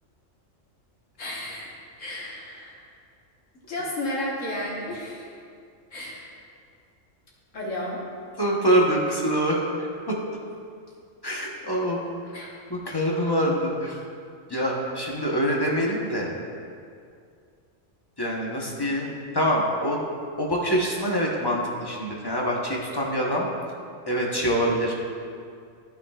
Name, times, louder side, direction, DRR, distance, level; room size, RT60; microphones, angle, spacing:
voice 1, 1.2-1.7 2.0-2.8 3.7-5.3 5.9-6.3 7.5-8.0 12.3-12.5, left 1 dB, 75° left, -5 dB, 1.7 m, -32 dB
voice 2, 8.4-10.2 11.2-12.0 12.4-14.0 14.5-16.3 18.2-20.0 20.4-23.5 24.1-24.9, equal, 20° left, -3 dB, 0.9 m, -25 dB
14.0 x 5.9 x 2.4 m, 2.3 s
omnidirectional pair, 1.3 m